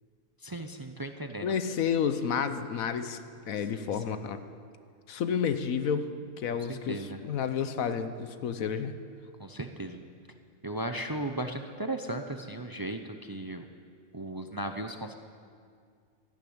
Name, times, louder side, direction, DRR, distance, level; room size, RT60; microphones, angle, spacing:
voice 1, 0.4-1.6 3.7-4.2 6.7-7.2 9.4-10.0 10.6-13.7 14.1-15.1, right 1 dB, 35° right, 6 dB, 0.3 m, -36 dB
voice 2, 1.4-3.2 3.5-4.4 5.1-6.1 6.4-8.9, left 7 dB, 80° left, 10 dB, 1.2 m, -30 dB
13.0 x 12.0 x 8.7 m, 2.2 s
omnidirectional pair, 1.4 m